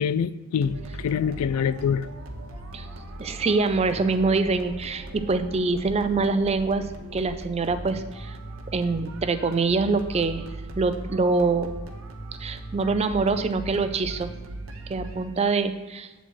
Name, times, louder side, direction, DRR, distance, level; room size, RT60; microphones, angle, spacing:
voice 1, 0.0-2.1, left 7 dB, 85° left, 17 dB, 0.3 m, -25 dB
sound 1, 0.6-15.5, right 2 dB, 70° right, 0.9 m, -39 dB
voice 2, 3.2-8.4 8.7-10.5 10.8-11.7 12.4-14.3 14.9-16.1, right 3 dB, 30° right, 9 dB, 0.4 m, -25 dB
7.5 x 4.0 x 6.2 m, 1.2 s
head